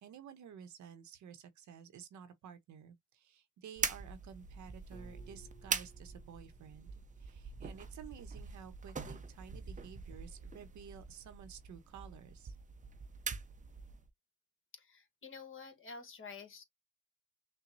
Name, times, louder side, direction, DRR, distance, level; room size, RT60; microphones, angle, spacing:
voice 1, 0.0-6.9 7.2-12.6, right 8 dB, 70° right, 0.9 m, -53 dB
sound 1, 3.8-14.1, right 5 dB, 25° right, 0.6 m, -43 dB
Piano, 4.9-7.8, equal, 25° left, 1.9 m, -61 dB
voice 2, 14.7-16.6, left 4 dB, 45° left, 1.4 m, -49 dB
6.1 x 2.2 x 2.6 m
cardioid pair, 90°, 30 cm